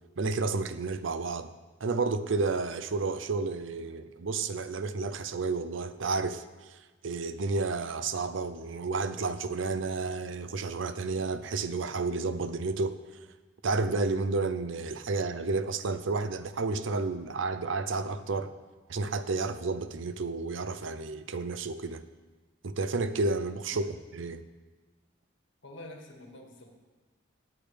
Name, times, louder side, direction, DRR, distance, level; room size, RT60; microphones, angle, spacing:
voice 1, 0.2-1.5 1.8-6.4 6.7-6.8 7.0-13.0 13.6-18.5 18.9-22.0 22.6-23.8 24.1-24.4, right 3 dB, 75° right, 12 dB, 0.6 m, -31 dB
voice 2, 25.6-26.7, left 1 dB, 70° left, 1 dB, 2.0 m, -47 dB
17.5 x 8.4 x 3.4 m, 1.3 s
head